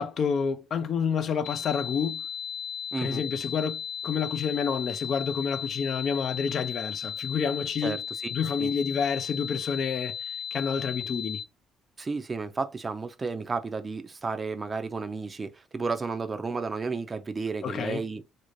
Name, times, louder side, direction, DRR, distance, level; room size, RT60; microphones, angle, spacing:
voice 1, 0.0-2.2 3.0-8.0 8.3-10.2 10.5-11.4 17.6-18.0, left 6 dB, 55° left, 0.3 m, -29 dB
sound 1, 1.4-11.4, left 7 dB, 75° left, 0.7 m, -36 dB
voice 2, 2.9-3.2 7.8-8.3 8.6-8.7 12.0-18.2, right 4 dB, 30° right, 0.4 m, -32 dB
2.5 x 2.1 x 3.0 m
supercardioid pair, 70°, 0 cm